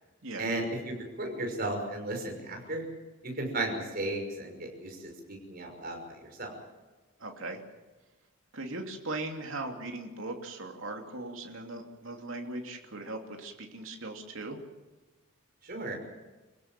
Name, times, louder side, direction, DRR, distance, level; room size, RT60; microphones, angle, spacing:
voice 1, 0.4-2.8 3.2-6.5 15.6-15.9, right 2 dB, 45° right, 2 dB, 5.8 m, -35 dB
voice 2, 7.2-7.6 8.5-14.6, right 2 dB, 70° right, 2 dB, 2.9 m, -39 dB
27.0 x 16.5 x 7.5 m, 1.2 s
head